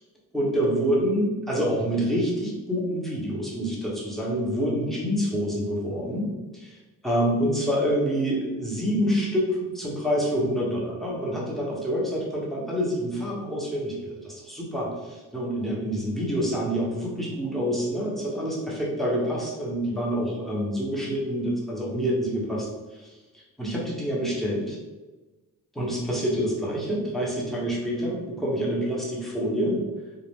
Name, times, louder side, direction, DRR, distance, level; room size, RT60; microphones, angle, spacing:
voice 1, 0.3-24.8 25.7-29.8, equal, ahead, -5 dB, 1.1 m, -27 dB
2.5 x 2.1 x 3.5 m, 1.2 s
supercardioid pair, 50°, 38 cm